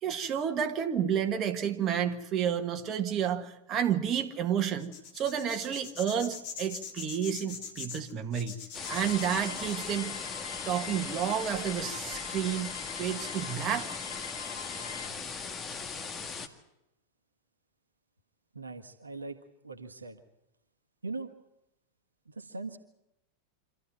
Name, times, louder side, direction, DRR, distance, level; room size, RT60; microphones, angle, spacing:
voice 1, 0.0-8.6 8.9-10.2 10.6-14.0, right 9 dB, 30° right, 5 dB, 1.8 m, -31 dB
sound 1, 4.8-10.0, left 6 dB, 45° left, 3.0 m, -43 dB
sound 2, 8.7-16.5, left 5 dB, 25° left, 2.0 m, -39 dB
sound 3, 8.8-15.1, left 7 dB, 70° left, 0.9 m, -44 dB
voice 2, 18.5-20.2 21.0-21.3 22.2-22.8, right 3 dB, 75° right, 6 dB, 1.6 m, -40 dB
26.5 x 14.0 x 9.2 m, 0.89 s
figure-of-eight pair, 90°, 0 cm